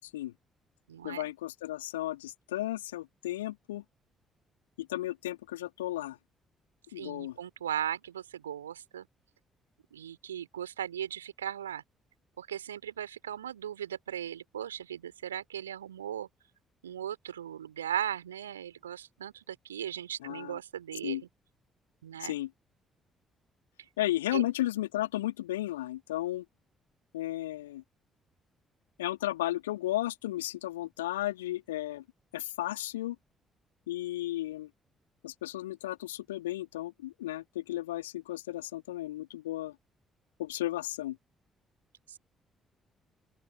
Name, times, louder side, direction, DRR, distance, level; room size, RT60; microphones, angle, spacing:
voice 1, 0.0-0.3 1.0-3.8 4.8-6.2 6.9-7.4 20.2-20.6 21.0-21.2 22.2-22.5 24.0-26.5 27.1-27.8 29.0-32.0 32.3-33.2 33.9-34.7 35.2-39.8 40.4-41.2, left 15 dB, 75° left, 3.4 m, -34 dB
voice 2, 0.9-1.3 7.0-9.1 9.9-11.8 12.4-16.3 16.8-21.2 22.0-22.4 24.3-24.4 42.1-42.2, right 10 dB, 80° right, 3.4 m, -37 dB
open air
figure-of-eight pair, 45°, 0 cm